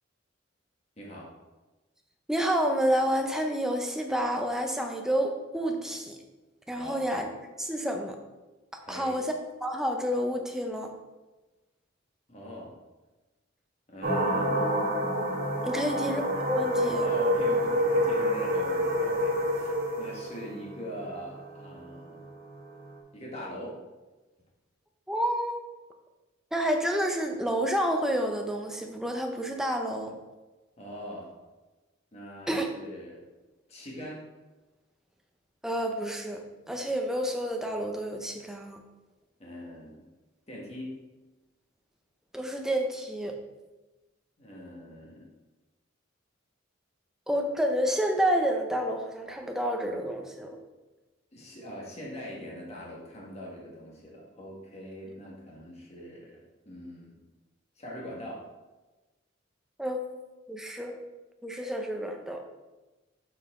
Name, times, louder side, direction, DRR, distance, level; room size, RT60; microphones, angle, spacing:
voice 1, 1.0-1.3 6.8-7.1 8.8-9.2 12.3-12.7 13.9-14.7 15.7-16.0 17.0-22.3 23.1-23.8 30.8-31.3 32.1-33.2 33.7-34.2 39.4-40.0 40.5-41.0 44.4-45.3 51.3-57.1 57.8-58.5, equal, 30° left, -3 dB, 1.6 m, -42 dB
voice 2, 2.3-6.2 6.7-7.3 7.6-8.2 8.7-9.3 9.6-10.9 15.6-17.0 25.1-25.6 26.5-30.2 32.5-32.7 35.6-38.8 42.3-43.4 47.3-50.6 59.8-60.0 60.5-61.0 61.4-62.4, equal, ahead, 3 dB, 0.6 m, -29 dB
sound 1, 14.0-22.9, equal, 45° right, 1.7 m, -28 dB
6.7 x 5.6 x 3.7 m, 1.1 s
head